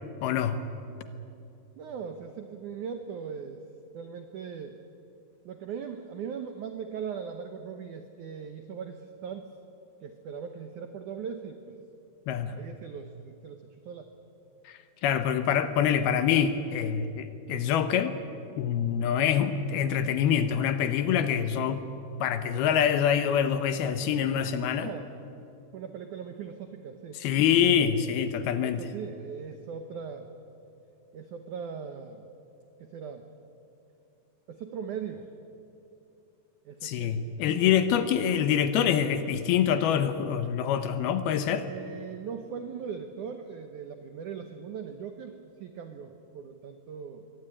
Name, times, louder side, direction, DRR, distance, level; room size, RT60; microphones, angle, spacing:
voice 1, 0.2-0.6 12.3-12.6 14.7-18.2 18.6-21.8 22.2-24.9 27.2-28.8 36.8-41.7, left 8 dB, 75° left, 10 dB, 2.6 m, -25 dB
voice 2, 1.8-3.6 3.9-4.8 5.4-9.5 10.0-11.8 12.5-14.1 24.8-25.1 25.7-27.2 28.6-30.3 31.1-32.3 32.8-33.3 34.5-35.3 36.7-38.5 41.6-47.3, right 7 dB, 80° right, 7 dB, 1.7 m, -40 dB
23.5 x 18.0 x 9.9 m, 2.7 s
omnidirectional pair, 5.1 m